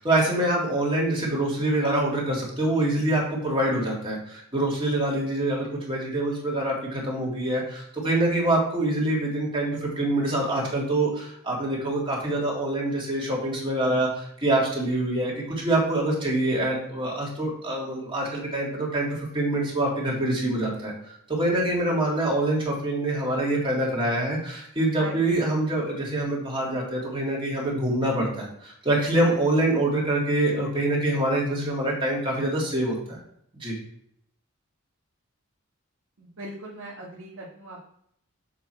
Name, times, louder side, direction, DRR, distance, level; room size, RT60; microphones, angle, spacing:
voice 1, 0.0-33.2 33.6-33.7, right 1 dB, 25° right, -3 dB, 2.1 m, -25 dB
voice 2, 24.9-25.2 36.2-37.9, right 2 dB, 65° right, -5 dB, 1.5 m, -39 dB
7.1 x 4.6 x 4.4 m, 0.71 s
head